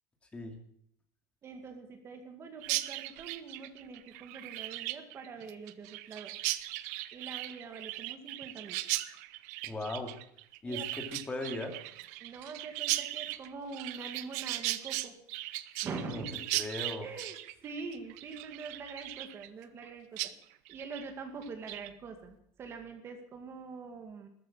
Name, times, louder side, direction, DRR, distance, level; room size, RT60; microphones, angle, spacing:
voice 1, 1.4-6.3 7.1-8.8 10.7-10.9 12.2-15.1 15.8-16.3 17.0-20.3 20.7-24.3, right 4 dB, 30° right, 6 dB, 2.2 m, -44 dB
Chirp tweet, 2.6-19.9 20.2-20.3 20.7-21.1 21.4-21.9, right 18 dB, 75° right, 0.9 m, -37 dB
voice 2, 9.6-10.1 10.6-11.8 16.0-16.2 16.5-17.1, left 2 dB, 15° left, 4 dB, 2.5 m, -38 dB
13.5 x 13.0 x 7.4 m, 0.67 s
cardioid pair, 155°, 9 cm